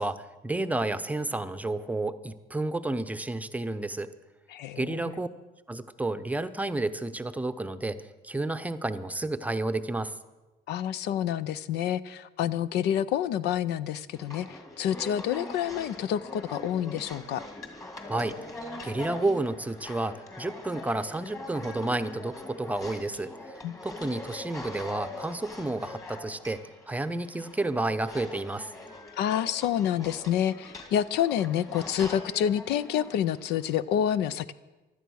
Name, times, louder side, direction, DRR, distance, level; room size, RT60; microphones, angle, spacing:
voice 1, 0.0-4.1 4.8-5.3 5.7-10.2 18.1-18.4 18.8-28.7, right 2 dB, 10° right, 11 dB, 0.7 m, -31 dB
voice 2, 4.5-5.2 10.7-17.4 23.6-23.7 29.2-34.5, left 10 dB, 80° left, 16 dB, 0.6 m, -28 dB
sound 1, 14.1-33.8, left 2 dB, 20° left, 2.4 m, -43 dB
16.0 x 12.0 x 6.4 m, 1.1 s
cardioid pair, 110°, 17 cm